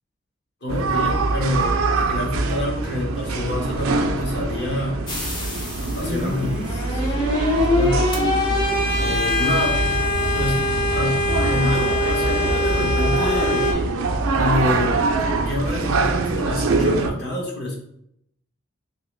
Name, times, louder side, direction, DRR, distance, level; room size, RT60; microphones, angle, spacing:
voice 1, 0.6-5.4 5.8-8.1 9.0-9.9 10.3-10.7 10.9-13.8 14.3-17.8, left 1 dB, 50° left, -1 dB, 0.9 m, -27 dB
sound 1, 0.7-17.1, right 3 dB, 85° right, 0.4 m, -24 dB
sound 2, 5.1-13.7, left 2 dB, 20° left, 0.5 m, -24 dB
2.9 x 2.9 x 3.1 m, 0.73 s
head